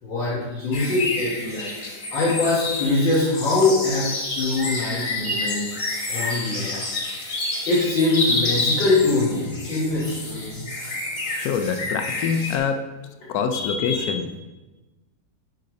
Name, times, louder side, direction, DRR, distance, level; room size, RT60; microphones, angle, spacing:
voice 1, 0.0-1.8 2.1-5.7 6.1-6.8 7.7-10.6 13.3-14.2, left 3 dB, 90° left, -7 dB, 2.5 m, -23 dB
sound 1, 0.7-12.6, left 2 dB, 45° left, 1.7 m, -29 dB
voice 2, 11.4-12.8 13.3-14.4, left 6 dB, 70° left, 7 dB, 1.0 m, -25 dB
6.6 x 5.3 x 5.2 m, 1.1 s
omnidirectional pair, 2.0 m